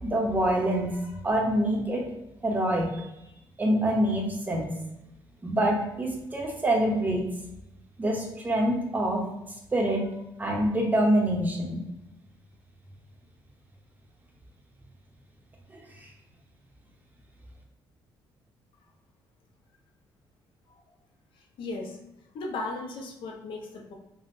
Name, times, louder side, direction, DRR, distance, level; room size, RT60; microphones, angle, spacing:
voice 1, 0.0-2.0 2.4-3.0 3.6-4.7 5.4-7.2 8.0-9.2 9.7-10.0 10.4-11.8, right 1 dB, 20° right, 0 dB, 0.6 m, -25 dB
voice 2, 21.6-21.9 22.3-23.9, left 2 dB, 70° left, 1 dB, 0.6 m, -36 dB
3.5 x 2.0 x 2.5 m, 0.87 s
cardioid pair, 120°, 9 cm